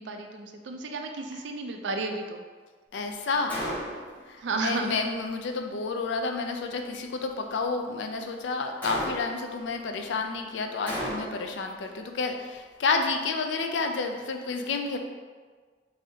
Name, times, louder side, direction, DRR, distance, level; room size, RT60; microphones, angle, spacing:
voice 1, 0.0-2.4 4.4-4.9, right 3 dB, 70° right, 4 dB, 0.4 m, -32 dB
voice 2, 2.9-3.6 4.3-15.0, left 4 dB, 70° left, 5 dB, 0.4 m, -30 dB
Gunshot gunfire, 3.5-4.2 8.8-9.5 10.9-11.6, equal, 10° left, 0.8 m, -33 dB
4.8 x 2.7 x 2.7 m, 1.5 s
head